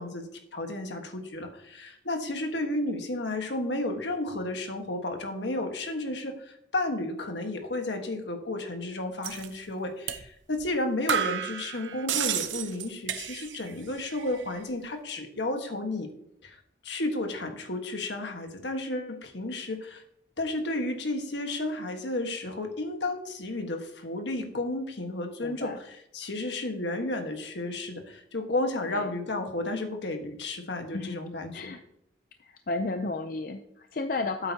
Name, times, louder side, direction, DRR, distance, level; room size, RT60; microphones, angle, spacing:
voice 1, 0.0-16.1 16.4-20.0 20.4-31.7, left 2 dB, 75° left, 5 dB, 1.4 m, -32 dB
sound 1, 9.2-9.5 10.1-10.2 10.6-10.7 11.1-13.7 14.0-14.6, right 9 dB, 90° right, 0.8 m, -31 dB
voice 2, 25.4-25.8 28.9-29.1 30.9-31.2 31.5-31.8 32.4-34.5, left 3 dB, 50° left, 6 dB, 0.5 m, -33 dB
12.5 x 8.7 x 2.8 m, 0.75 s
head